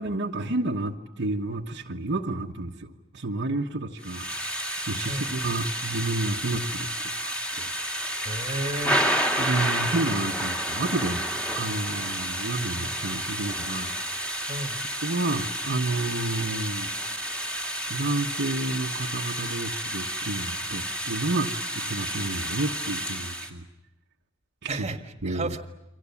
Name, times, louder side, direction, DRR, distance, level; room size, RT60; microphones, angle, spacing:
voice 1, 0.0-4.3 4.9-7.7 9.4-11.3 11.5-14.0 15.0-16.9 17.9-23.6 24.6-24.9 25.2-25.5, right 2 dB, 60° right, 1 dB, 1.2 m, -30 dB
Thunder / Rain, 4.0-23.5, equal, 5° left, 2.5 m, -30 dB
voice 2, 8.2-9.0 14.5-14.8 24.7-25.0 25.2-25.6, right 2 dB, 30° right, 6 dB, 1.6 m, -32 dB
29.5 x 24.5 x 7.2 m, 0.93 s
head